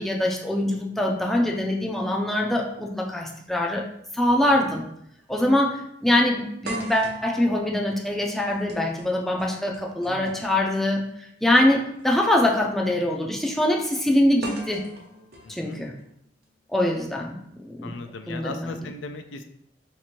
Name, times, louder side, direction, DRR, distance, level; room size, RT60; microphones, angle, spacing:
voice 1, 0.0-3.8 4.1-4.9 5.3-11.0 11.4-14.8 15.5-15.9 16.7-17.4 17.7-17.9 18.3-18.7, left 1 dB, ahead, -1 dB, 0.4 m, -23 dB
voice 2, 4.3-4.7 10.1-10.5 15.4-15.8 17.8-19.4, left 3 dB, 80° left, 7 dB, 0.4 m, -38 dB
sound 1, 4.7-4.8 5.2-5.3 6.6-10.7 11.9-12.0 14.4-16.4, right 2 dB, 60° right, 0.7 m, -41 dB
2.9 x 2.5 x 4.3 m, 0.73 s
head